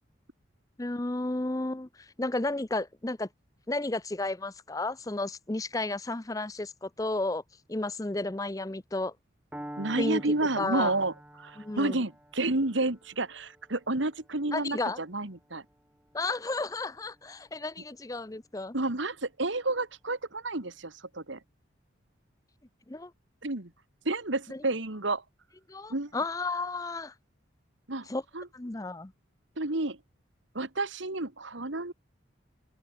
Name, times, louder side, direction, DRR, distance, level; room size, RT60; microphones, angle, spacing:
voice 1, 0.8-3.3 3.7-7.4 7.7-9.1 10.0-10.2 10.6-10.9 11.6-12.0 14.5-15.0 16.1-18.7 22.9-23.1 24.5-24.6 25.7-27.1 28.1-28.2 28.5-29.1, left 2 dB, 15° left, 0.6 m, -32 dB
Piano, 9.5-17.4, equal, 5° right, 5.8 m, -48 dB
voice 2, 9.8-11.1 11.4-15.6 18.7-21.4 23.4-23.7 24.1-25.2 25.9-26.1 27.9-28.1 28.3-28.5 29.6-30.0 30.5-31.9, right 2 dB, 75° right, 2.1 m, -30 dB
head